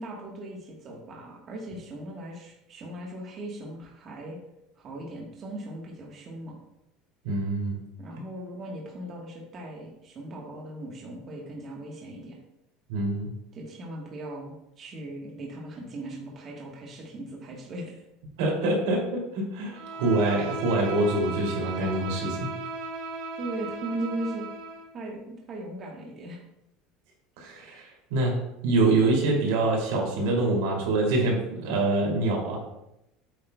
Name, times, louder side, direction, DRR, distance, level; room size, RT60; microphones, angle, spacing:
voice 1, 0.0-4.4 4.8-6.6 8.0-12.4 13.5-18.0 23.4-24.5 24.9-26.4, right 1 dB, 30° right, -2 dB, 1.3 m, -38 dB
voice 2, 7.2-7.8 12.9-13.3 18.4-22.5 27.4-28.3 28.6-32.6, right 2 dB, 85° right, -1 dB, 2.6 m, -25 dB
Bowed string instrument, 19.7-24.9, right 3 dB, 65° right, 1.1 m, -36 dB
8.3 x 7.9 x 2.3 m, 0.84 s
cardioid pair, 165°, 0 cm